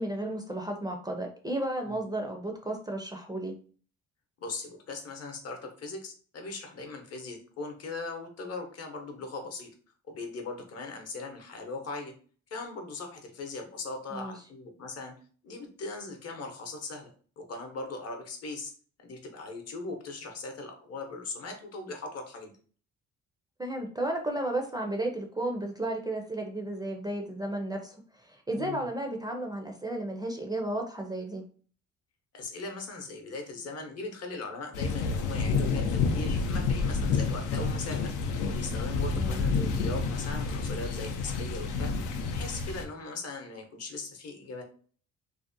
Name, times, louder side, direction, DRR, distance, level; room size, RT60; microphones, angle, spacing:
voice 1, 0.0-3.5 14.1-14.3 23.6-27.9 28.2-31.4 39.1-39.4, right 1 dB, 15° right, 2 dB, 0.4 m, -33 dB
voice 2, 4.4-9.7 10.1-12.1 12.5-15.1 15.4-18.7 19.0-22.5 28.5-28.9 32.3-38.1 38.5-44.6, left 3 dB, 55° left, 4 dB, 0.7 m, -39 dB
sound 1, 34.7-42.9, left 4 dB, 85° left, 0.5 m, -29 dB
2.6 x 2.1 x 2.5 m, 0.42 s
cardioid pair, 90°, 30 cm